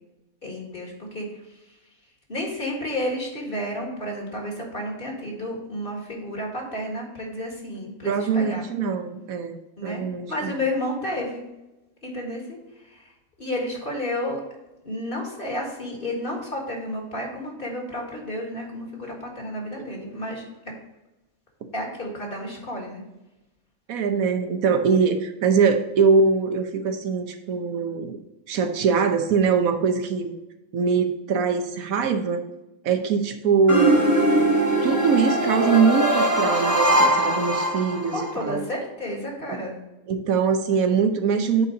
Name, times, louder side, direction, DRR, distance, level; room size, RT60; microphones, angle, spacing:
voice 1, 0.4-1.8 2.3-8.6 9.8-10.0 10.3-11.5 12.0-13.1 13.4-14.4 14.8-20.7 21.7-23.0 38.1-39.8, left 1 dB, 40° left, 0 dB, 1.9 m, -31 dB
voice 2, 8.0-9.6 9.8-10.5 23.9-28.2 28.5-30.3 30.7-32.5 32.8-34.1 34.8-38.6 39.5-39.6 40.1-41.7, right 5 dB, 75° right, 7 dB, 1.3 m, -22 dB
sound 1, 33.7-38.3, right 1 dB, 15° right, 1.1 m, -21 dB
8.6 x 4.2 x 3.9 m, 0.98 s
omnidirectional pair, 1.5 m